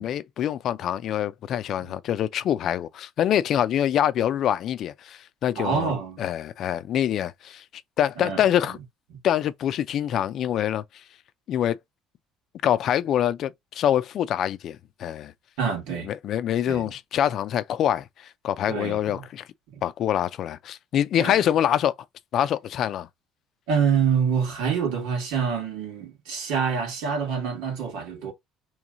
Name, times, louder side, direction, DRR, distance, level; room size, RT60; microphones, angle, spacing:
voice 1, 0.0-5.9 6.2-7.6 8.0-8.8 9.2-10.8 11.5-11.8 12.6-15.3 16.0-19.4 19.8-21.9 22.3-23.1, left 10 dB, 55° left, 0.4 m, -25 dB
voice 2, 5.6-6.2 8.2-8.4 15.6-16.1 16.7-16.9 18.7-19.2 21.2-21.4 23.7-28.3, right 6 dB, 90° right, 1.7 m, -26 dB
3.1 x 3.0 x 3.7 m
cardioid pair, 120°, 0 cm